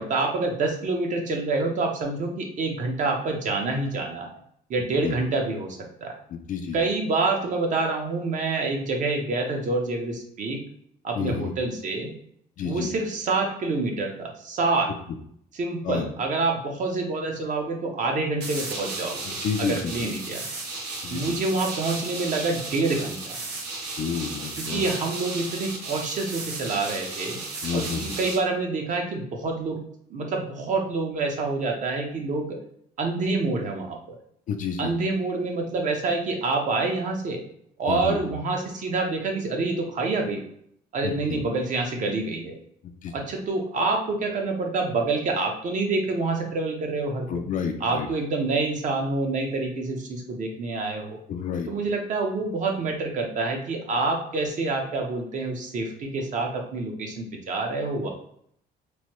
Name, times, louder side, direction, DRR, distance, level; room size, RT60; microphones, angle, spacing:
voice 1, 0.0-4.4 4.7-6.2 6.7-10.6 11.0-12.1 12.6-14.9 15.5-20.4 21.1-23.4 24.6-27.4 27.7-27.9 28.2-29.8 30.1-32.6 33.0-34.2 34.8-37.4 37.8-40.4 40.9-42.6 43.1-47.5 47.8-51.2 51.7-58.1, right 3 dB, 50° right, 2 dB, 0.7 m, -27 dB
voice 2, 6.3-6.8 11.1-11.5 12.6-12.9 15.8-16.1 19.2-19.9 21.0-21.4 24.0-24.9 27.6-28.2 34.5-34.9 37.9-38.2 41.0-41.4 42.8-43.1 47.3-48.1 51.3-51.7, left 7 dB, 50° left, 4 dB, 0.4 m, -30 dB
sound 1, 18.4-28.4, right 3 dB, 85° right, 0.9 m, -34 dB
3.1 x 2.1 x 2.9 m, 0.68 s
cardioid pair, 110°, 17 cm